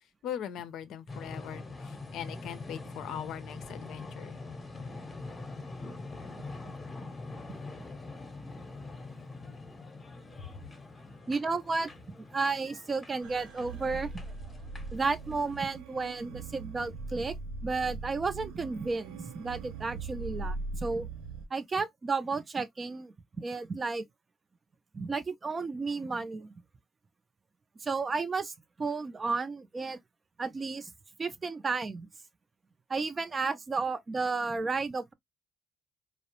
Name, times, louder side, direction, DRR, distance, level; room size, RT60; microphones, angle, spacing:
voice 1, 0.2-4.4 10.4-10.7, left 9 dB, 70° left, 0.5 m, -40 dB
sound 1, 1.1-15.7, left 3 dB, 25° left, 0.8 m, -44 dB
voice 2, 11.3-11.9 12.3-14.1 14.9-17.4 17.6-21.1 21.5-24.0 24.9-26.5 27.8-30.0 30.4-30.9 31.2-32.1 32.9-35.1, right 4 dB, 30° right, 0.5 m, -32 dB
sound 2, 13.2-21.5, right 3 dB, 85° right, 0.5 m, -41 dB
2.3 x 2.0 x 2.8 m
supercardioid pair, 80°, 0 cm